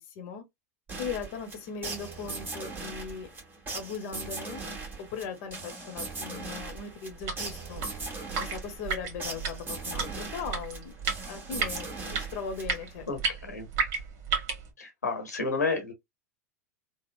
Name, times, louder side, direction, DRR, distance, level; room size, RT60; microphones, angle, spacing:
voice 1, 0.1-0.4 1.0-3.3 3.7-4.6 5.0-7.8 8.4-10.9 11.3-13.0, left 5 dB, 55° left, 0.9 m, -38 dB
sound 1, 0.9-13.0, right 3 dB, 20° right, 1.4 m, -39 dB
sound 2, 7.1-14.7, right 5 dB, 45° right, 1.2 m, -33 dB
voice 2, 13.1-13.7 14.8-15.9, left 4 dB, 85° left, 0.9 m, -31 dB
3.4 x 2.0 x 2.4 m
hypercardioid pair, 95°, 9 cm